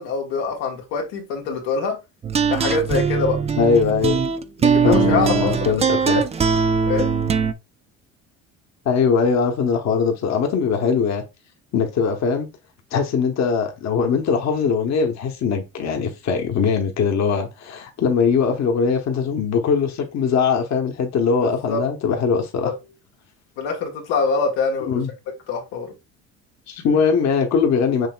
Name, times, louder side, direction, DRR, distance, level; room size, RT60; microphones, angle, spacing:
voice 1, 0.0-2.0 2.5-3.4 4.6-6.2 6.8-7.1 21.4-21.8 22.6-22.7 23.6-25.0 25.5-25.9, left 4 dB, 85° left, 1.4 m, -24 dB
sound 1, 2.2-7.5, right 6 dB, 20° right, 0.3 m, -21 dB
voice 2, 3.6-4.2 4.8-6.2 8.8-11.2 11.7-12.5 12.9-22.7 24.9-25.1 26.7-28.1, left 6 dB, 50° left, 1.1 m, -21 dB
6.5 x 3.0 x 2.2 m
supercardioid pair, 80°, 35 cm